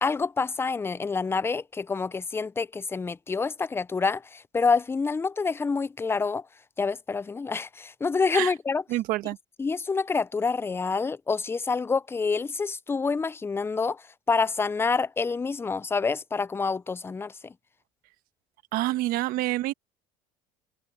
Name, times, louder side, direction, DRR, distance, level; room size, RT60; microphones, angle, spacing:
voice 1, 0.0-6.4 6.8-8.8 9.6-17.5, left 4 dB, 15° left, 0.5 m, -27 dB
voice 2, 8.9-9.4 18.7-19.7, right 16 dB, 65° right, 1.3 m, -27 dB
supercardioid pair, 100°, 16 cm